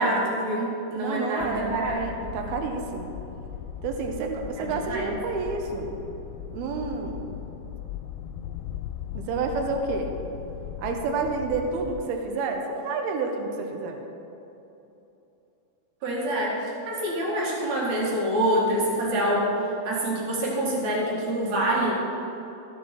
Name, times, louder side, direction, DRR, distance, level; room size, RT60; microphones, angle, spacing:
voice 1, 0.0-2.0 4.6-5.1 16.0-19.6 19.8-22.0, right 1 dB, 55° right, -4 dB, 2.4 m, -26 dB
voice 2, 1.0-3.1 3.8-5.9 6.5-7.4 9.1-10.1 10.8-14.0, right 4 dB, 80° right, 3 dB, 2.3 m, -29 dB
sound 1, 1.4-12.3, left 9 dB, 90° left, 2.9 m, -38 dB
13.0 x 7.4 x 4.5 m, 3.0 s
omnidirectional pair, 5.2 m